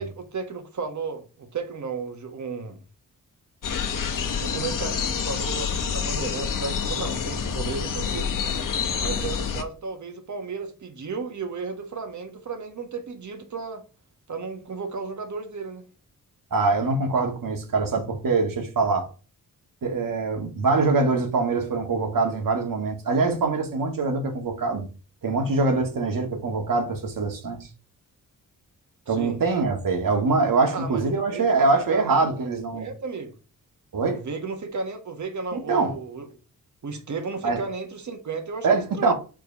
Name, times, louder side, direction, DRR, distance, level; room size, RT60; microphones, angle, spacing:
voice 1, 0.0-2.8 4.4-8.3 9.0-13.8 14.3-15.8 29.0-29.4 30.7-32.3 32.5-33.3 34.1-36.3 36.8-39.1, right 4 dB, 60° right, 1.5 m, -34 dB
sound 1, 3.6-9.6, left 6 dB, 70° left, 1.1 m, -27 dB
voice 2, 16.5-19.1 19.8-24.9 25.2-27.7 29.1-32.9 33.9-34.2 35.5-36.0 37.4-37.6 38.6-39.1, right 3 dB, 75° right, 1.8 m, -23 dB
5.1 x 4.5 x 5.5 m
wide cardioid pair, 110°, 34 cm